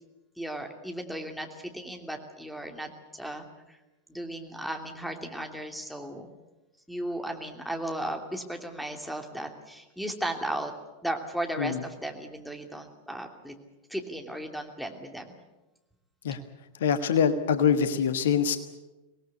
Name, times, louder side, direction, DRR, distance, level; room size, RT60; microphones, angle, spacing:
voice 1, 0.4-3.8 4.1-6.3 6.9-10.7 11.0-13.5 13.9-15.4, right 1 dB, ahead, 4 dB, 2.8 m, -35 dB
voice 2, 16.8-18.6, left 7 dB, 60° left, 11 dB, 1.3 m, -24 dB
25.0 x 19.0 x 8.4 m, 1.1 s
figure-of-eight pair, 90°, 0 cm